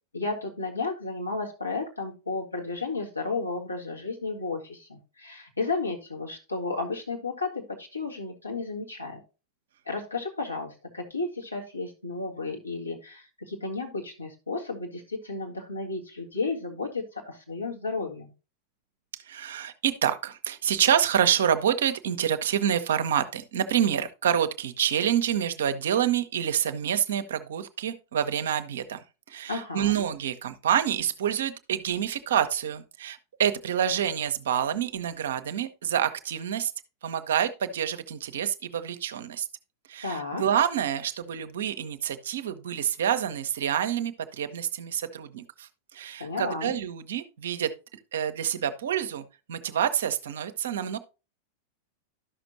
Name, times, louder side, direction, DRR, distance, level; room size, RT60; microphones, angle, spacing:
voice 1, 0.1-9.2 9.9-18.3 29.5-30.0 40.0-40.4 46.2-46.7, left 3 dB, 85° left, 2.0 m, -33 dB
voice 2, 19.1-36.7 37.0-39.5 39.9-51.0, right 9 dB, 60° right, 0.7 m, -27 dB
12.5 x 6.0 x 2.6 m
figure-of-eight pair, 90°, 0 cm